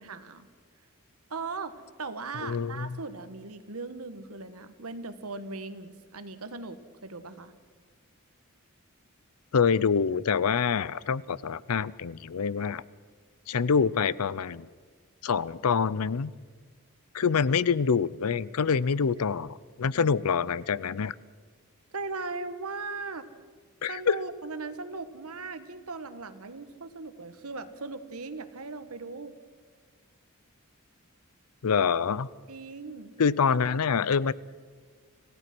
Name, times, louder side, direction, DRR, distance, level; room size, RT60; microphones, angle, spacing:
voice 1, 0.0-0.5 1.3-1.7 2.0-7.5 21.9-23.3 23.9-29.4 32.5-33.1, right 3 dB, 80° right, 11 dB, 1.4 m, -38 dB
voice 2, 2.4-3.0 9.5-12.8 13.5-14.7 15.2-16.3 17.1-21.1 23.8-24.2 31.6-32.3 33.2-34.3, left 6 dB, 85° left, 20 dB, 0.6 m, -26 dB
27.0 x 16.0 x 6.1 m, 1.5 s
head